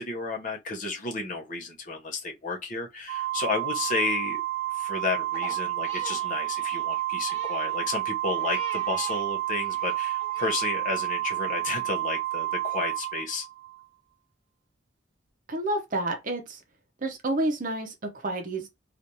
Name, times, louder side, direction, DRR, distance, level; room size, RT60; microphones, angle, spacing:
voice 1, 0.0-4.4 4.7-13.5, left 3 dB, 45° left, 0.8 m, -32 dB
Organ, 3.1-13.8, right 16 dB, 85° right, 0.6 m, -30 dB
Crying sobbing, 5.3-9.2 9.6-10.6, equal, 10° left, 1.6 m, -44 dB
voice 2, 15.5-16.6 17.0-18.7, right 1 dB, 45° right, 0.6 m, -29 dB
3.3 x 2.5 x 2.7 m
head